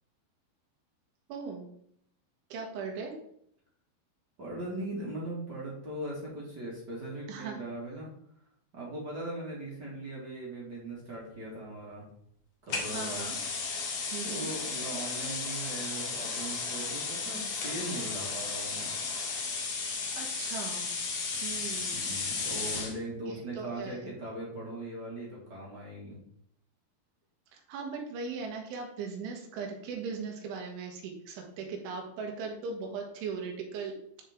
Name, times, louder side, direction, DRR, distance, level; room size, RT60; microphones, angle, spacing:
voice 1, 1.3-1.7 2.5-3.1 7.3-7.6 12.9-13.4 14.1-14.5 20.2-20.9 21.4-22.1 23.3-24.1 27.5-33.9, right 5 dB, 85° right, 1 dB, 4.0 m, -39 dB
voice 2, 4.4-8.1 8.7-12.1 12.6-13.3 14.2-18.9 21.9-26.2, right 1 dB, 35° right, -5 dB, 1.8 m, -39 dB
sound 1, 12.7-23.0, left 4 dB, 65° left, 1.6 m, -34 dB
12.5 x 5.0 x 3.7 m, 0.71 s
omnidirectional pair, 5.4 m